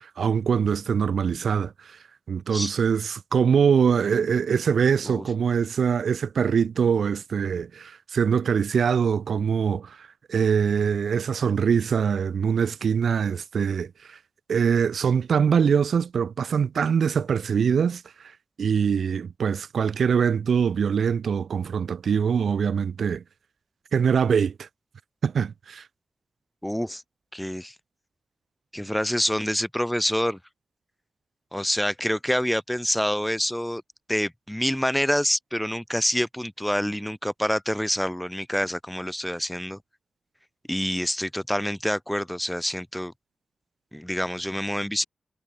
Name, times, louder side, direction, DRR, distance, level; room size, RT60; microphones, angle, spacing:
voice 1, 0.0-2.0 2.3-14.2 14.5-18.0 18.6-23.2 23.9-24.7 25.2-25.9, right 7 dB, 80° right, 1.9 m, -23 dB
voice 2, 26.6-27.0 27.3-27.7 28.7-30.4 31.5-33.8 34.1-39.8 40.7-43.1 43.9-45.0, equal, 5° left, 3.5 m, -27 dB
cardioid pair, 80°, 0 cm